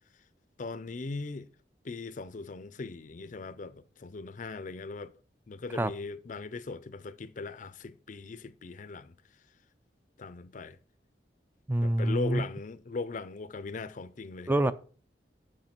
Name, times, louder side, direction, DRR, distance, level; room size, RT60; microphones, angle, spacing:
voice 1, 0.6-1.5 1.8-5.1 5.5-9.1 10.2-10.8 11.8-14.5, left 3 dB, 45° left, 0.5 m, -39 dB
voice 2, 11.7-12.4 14.5-14.7, right 1 dB, 10° right, 0.3 m, -26 dB
6.5 x 6.2 x 5.9 m
head